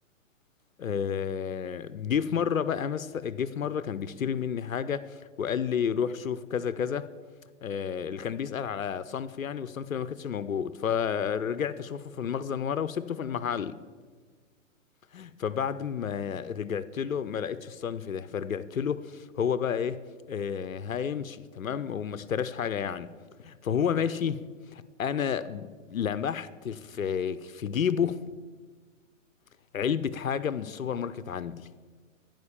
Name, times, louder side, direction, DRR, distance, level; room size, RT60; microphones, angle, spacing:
voice 1, 0.8-7.1 7.6-13.8 15.1-20.0 20.3-23.1 23.4-24.4 24.7-28.2 29.7-31.7, left 7 dB, 85° left, 0.6 m, -31 dB
15.0 x 5.2 x 7.3 m
figure-of-eight pair, 120°, 40 cm